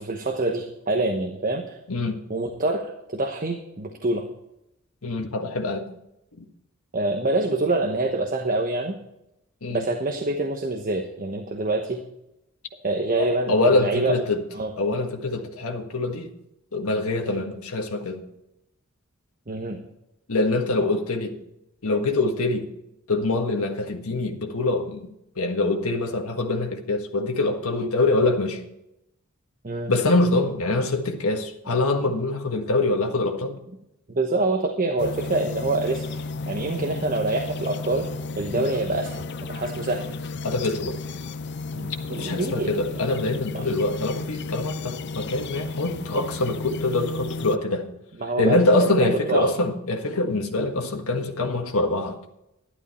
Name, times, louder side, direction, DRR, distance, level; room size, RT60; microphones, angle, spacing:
voice 1, 0.0-1.8 2.3-4.3 6.9-9.0 9.7-12.0 12.8-14.1 14.5-14.7 17.2-17.4 19.5-19.8 29.6-29.9 34.1-38.1 38.4-39.2 39.5-40.1 41.7-43.0 43.5-43.7 48.2-49.5, right 2 dB, 40° right, 1.1 m, -26 dB
voice 2, 1.9-2.2 5.0-5.9 9.6-9.8 13.2-14.4 14.8-16.3 16.7-18.2 20.3-21.4 21.8-22.7 23.1-25.1 25.3-28.6 29.9-33.6 38.5-38.7 40.4-41.0 42.1-47.9 48.4-52.2, left 2 dB, 85° left, 1.6 m, -24 dB
sound 1, 35.0-47.6, left 3 dB, 55° left, 0.5 m, -33 dB
12.5 x 12.0 x 4.4 m
head